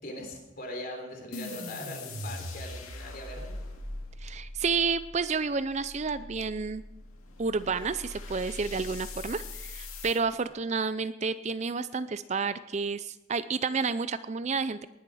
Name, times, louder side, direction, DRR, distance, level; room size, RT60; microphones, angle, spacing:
voice 1, 0.0-3.5, left 1 dB, 45° left, 2 dB, 3.6 m, -41 dB
sound 1, 1.3-10.2, left 2 dB, 90° left, 2.3 m, -41 dB
voice 2, 4.2-6.8 7.4-14.8, right 4 dB, 35° right, 13 dB, 0.4 m, -30 dB
19.5 x 11.0 x 4.8 m, 1.0 s
head